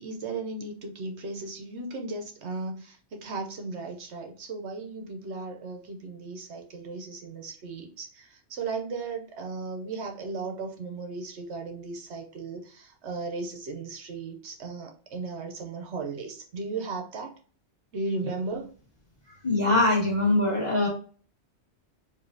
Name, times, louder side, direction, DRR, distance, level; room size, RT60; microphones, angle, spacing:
voice 1, 0.0-17.3 17.9-18.7, right 3 dB, 70° right, 3 dB, 1.0 m, -36 dB
voice 2, 19.4-20.9, left 2 dB, 25° left, -4 dB, 1.7 m, -22 dB
4.9 x 2.8 x 2.6 m, 0.41 s
omnidirectional pair, 1.2 m